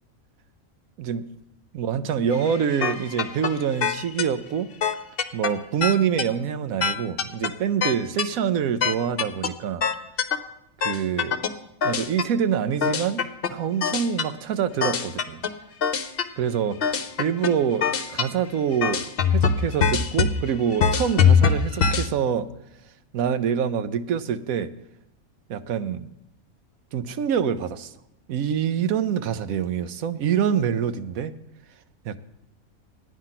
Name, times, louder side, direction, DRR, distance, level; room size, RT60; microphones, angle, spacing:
voice 1, 1.7-4.7 5.3-9.8 10.8-11.4 11.8-15.4 16.4-22.5 23.1-24.7 25.5-26.1 26.9-27.9 28.3-31.3 32.0-32.2, right 8 dB, 80° right, 12 dB, 1.1 m, -26 dB
sound 1, 2.3-3.5 3.8-4.2 4.8-5.5 5.8-6.2 6.8-7.5 7.8-8.2 8.8-9.5 9.8-10.4 10.8-11.5 11.8-12.2 12.8-13.5 13.8-14.2 14.8-15.5 15.8-16.2 16.8-17.5 17.8-18.3 18.8-22.1, left 6 dB, 50° left, 0.9 m, -22 dB
12.0 x 9.6 x 5.8 m, 0.84 s
omnidirectional pair, 1.4 m